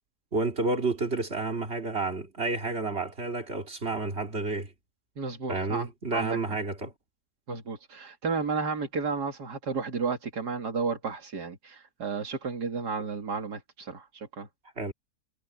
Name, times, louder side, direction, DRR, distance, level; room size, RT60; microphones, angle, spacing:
voice 1, 0.3-4.7 5.5-6.9 14.8-14.9, right 3 dB, 40° right, 2.8 m, -30 dB
voice 2, 5.2-6.4 7.5-14.5, right 4 dB, 80° right, 3.0 m, -32 dB
omnidirectional pair, 1.7 m